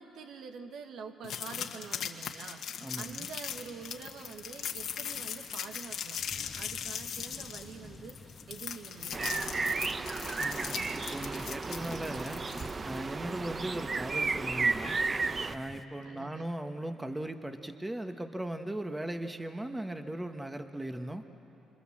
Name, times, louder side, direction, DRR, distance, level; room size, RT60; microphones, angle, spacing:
voice 1, 0.0-2.7 3.0-6.3 6.6-9.5 16.0-16.5, right 5 dB, 70° right, 6 dB, 1.6 m, -46 dB
sound 1, 1.2-13.0, left 8 dB, 65° left, 1.7 m, -39 dB
voice 2, 2.8-3.3 10.4-12.4 12.8-15.0 15.5-21.2, right 1 dB, 10° right, 7 dB, 1.3 m, -38 dB
sound 2, 3.0-15.8, left 2 dB, 15° left, 1.3 m, -52 dB
sound 3, 9.1-15.6, right 4 dB, 35° right, 0.8 m, -33 dB
26.0 x 25.5 x 7.5 m, 3.0 s
supercardioid pair, 75°, 0 cm